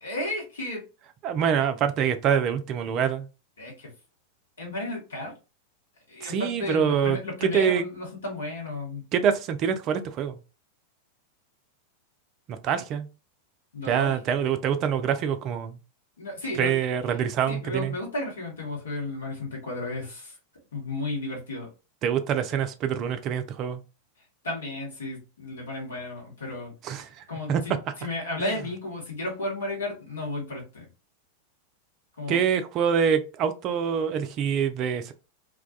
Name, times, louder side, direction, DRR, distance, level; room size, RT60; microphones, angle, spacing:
voice 1, 0.0-0.8 3.6-3.9 4.6-5.4 6.1-9.0 13.7-14.1 16.2-16.8 17.5-20.3 20.7-21.7 24.4-26.7 27.3-30.9 32.2-32.4, left 2 dB, 65° left, 1.1 m, -33 dB
voice 2, 1.2-3.3 6.2-7.8 9.1-10.4 12.5-13.1 13.8-15.8 16.6-17.9 22.0-23.8 26.8-27.6 28.4-28.5 32.3-35.1, right 8 dB, 35° right, 0.3 m, -25 dB
2.3 x 2.2 x 2.5 m
figure-of-eight pair, 90°, 0 cm